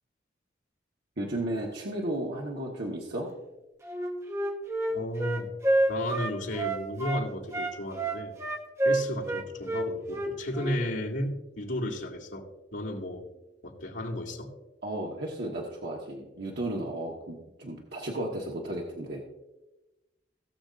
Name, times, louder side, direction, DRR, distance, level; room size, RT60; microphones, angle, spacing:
voice 1, 1.2-3.3 14.8-19.2, right 1 dB, 65° right, -2 dB, 1.4 m, -34 dB
Wind instrument woodwind instrument, 3.8-7.2 7.5-10.8, right 1 dB, 15° right, 1.1 m, -28 dB
voice 2, 4.9-5.5 5.9-8.3 8.8-13.3 13.6-14.5, left 1 dB, 85° left, -4 dB, 2.4 m, -34 dB
18.0 x 7.0 x 2.5 m, 1.0 s
head